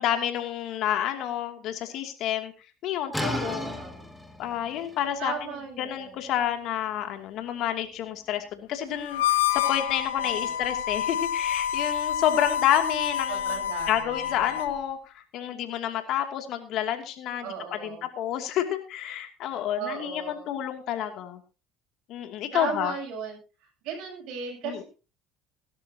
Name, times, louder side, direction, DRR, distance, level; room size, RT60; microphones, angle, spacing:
voice 1, 0.0-2.5 2.8-3.7 4.4-5.5 5.8-13.6 13.9-21.4 22.1-22.9 24.6-24.8, left 10 dB, 65° left, 6 dB, 2.6 m, -29 dB
sound 1, 3.1-8.8, left 1 dB, ahead, 2.8 m, -38 dB
voice 2, 3.2-4.1 5.2-6.2 10.2-10.7 13.3-14.5 17.4-18.0 19.5-20.6 22.5-23.4 23.8-24.8, right 6 dB, 65° right, 2 dB, 8.0 m, -37 dB
Harmonica, 9.1-14.8, left 10 dB, 90° left, 0.9 m, -28 dB
17.5 x 12.5 x 2.9 m, 0.32 s
hypercardioid pair, 75°, 0 cm